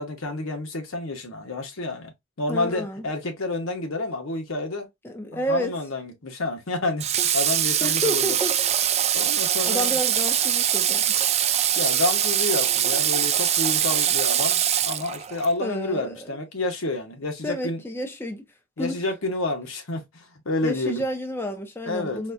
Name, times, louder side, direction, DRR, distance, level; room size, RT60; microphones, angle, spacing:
voice 1, 0.0-2.1 2.4-4.9 5.3-7.0 7.3-8.4 9.1-10.0 11.8-17.8 18.8-21.0 21.9-22.2, left 2 dB, 80° left, 1.1 m, -29 dB
voice 2, 2.5-3.1 5.0-5.7 7.8-8.5 9.6-11.1 15.6-16.3 17.4-18.4 18.8-19.0 20.6-22.3, equal, 10° left, 0.6 m, -30 dB
Water / Water tap faucet, 7.0-15.5, right 10 dB, 30° right, 0.3 m, -23 dB
4.1 x 2.2 x 2.5 m
head